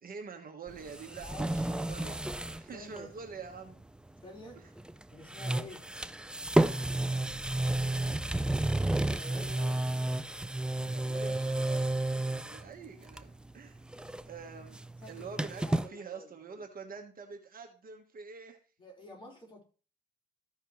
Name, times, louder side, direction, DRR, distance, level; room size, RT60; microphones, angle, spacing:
voice 1, 0.0-3.8 10.9-13.8 14.3-14.8 15.1-18.6, right 5 dB, 45° right, 4 dB, 1.4 m, -46 dB
sound 1, 0.7-2.6 3.0-3.1 4.8-5.0 5.3-12.7 13.1-13.5 13.8-15.9, right 1 dB, 5° right, 0.4 m, -31 dB
voice 2, 1.2-1.6 2.7-3.1 4.2-4.6 5.1-5.9 8.8-9.8 15.0-15.3 15.5-16.6 18.8-19.6, left 1 dB, 25° left, -2 dB, 4.5 m, -49 dB
14.0 x 5.6 x 3.2 m, 0.37 s
cardioid pair, 90°, 20 cm